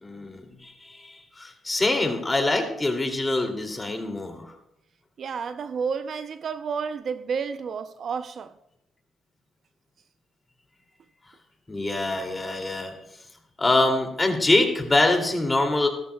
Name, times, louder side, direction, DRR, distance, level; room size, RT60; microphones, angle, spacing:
voice 1, 0.0-4.5 11.7-12.9 13.6-15.9, left 2 dB, 20° left, 2.6 m, -24 dB
voice 2, 5.2-8.5, right 6 dB, 55° right, 0.6 m, -31 dB
17.5 x 13.5 x 2.3 m
cardioid pair, 90°, 0 cm